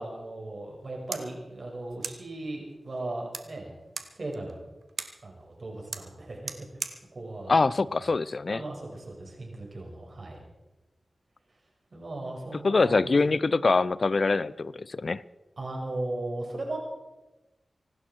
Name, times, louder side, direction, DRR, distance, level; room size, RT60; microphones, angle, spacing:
voice 1, 0.0-3.7 4.1-4.6 5.2-6.5 7.1-8.1 8.5-10.4 11.9-13.2 15.6-16.8, right 2 dB, 55° right, 0 dB, 5.8 m, -37 dB
sound 1, 0.7-8.7, right 4 dB, 75° right, 1.4 m, -43 dB
voice 2, 7.5-8.6 12.6-15.2, left 3 dB, 55° left, 19 dB, 0.5 m, -24 dB
25.0 x 12.0 x 4.6 m, 1.1 s
cardioid pair, 55°, 0 cm